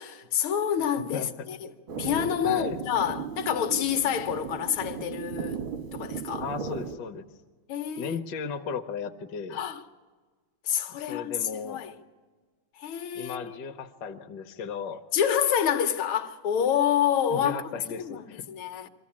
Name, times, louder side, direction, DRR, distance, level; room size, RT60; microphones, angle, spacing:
voice 1, 0.0-1.7 2.0-5.6 5.9-6.4 7.7-8.2 9.5-9.8 10.7-11.9 12.8-13.6 15.1-17.6 18.0-18.9, left 9 dB, 85° left, 1.7 m, -28 dB
sound 1, 1.9-7.0, right 6 dB, 90° right, 2.1 m, -36 dB
voice 2, 2.4-2.8 6.4-7.3 8.0-9.6 10.9-11.8 13.1-15.0 17.3-18.4, left 6 dB, 65° left, 1.3 m, -36 dB
23.5 x 14.0 x 8.5 m
omnidirectional pair, 2.3 m